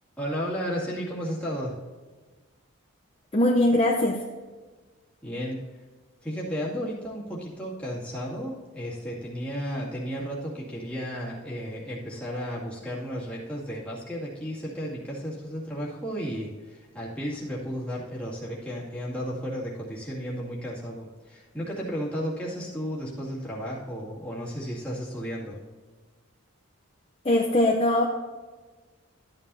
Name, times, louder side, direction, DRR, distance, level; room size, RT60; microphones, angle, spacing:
voice 1, 0.2-1.8 5.2-5.6 6.2-25.6, equal, 5° left, -7 dB, 2.4 m, -33 dB
voice 2, 3.3-4.2 27.2-28.0, left 1 dB, 25° left, 0 dB, 0.7 m, -21 dB
13.0 x 9.1 x 2.8 m, 1.3 s
head